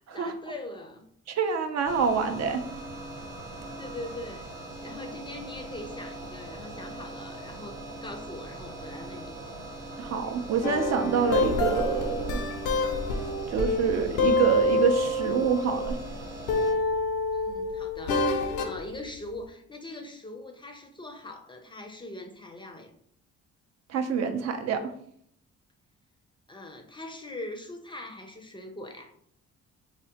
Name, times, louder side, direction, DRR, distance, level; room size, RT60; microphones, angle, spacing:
voice 1, 0.1-1.0 3.5-4.5 4.8-9.4 17.3-22.9 26.5-29.1, left 1 dB, 15° left, 4 dB, 0.4 m, -42 dB
voice 2, 1.3-2.6 10.0-12.4 13.1-16.0 23.9-24.9, right 6 dB, 60° right, 7 dB, 0.5 m, -27 dB
sound 1, 1.8-16.7, right 1 dB, 85° right, 0.9 m, -41 dB
sound 2, 10.6-16.1 16.5-18.8, left 2 dB, 90° left, 0.5 m, -27 dB
3.5 x 2.1 x 2.8 m, 0.68 s
cardioid pair, 90°, 30 cm